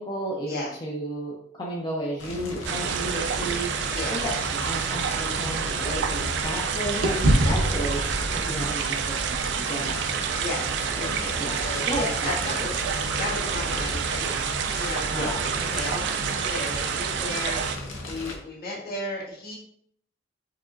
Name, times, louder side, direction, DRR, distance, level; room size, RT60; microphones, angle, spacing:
voice 1, 0.0-4.3 4.6-7.2 7.4-8.0 8.4-10.1 11.4-11.6 11.8-12.5 15.1-15.4, right 1 dB, 20° left, -5 dB, 0.5 m, -33 dB
Fire, 2.2-18.4, left 1 dB, 80° left, 0.8 m, -35 dB
sound 1, 2.6-17.8, right 7 dB, 60° right, 0.3 m, -29 dB
sound 2, 5.1-6.6 7.0-11.3, right 1 dB, 75° right, 0.7 m, -28 dB
voice 2, 10.9-19.6, left 2 dB, 50° left, -5 dB, 1.4 m, -35 dB
4.7 x 2.9 x 2.5 m, 0.66 s
head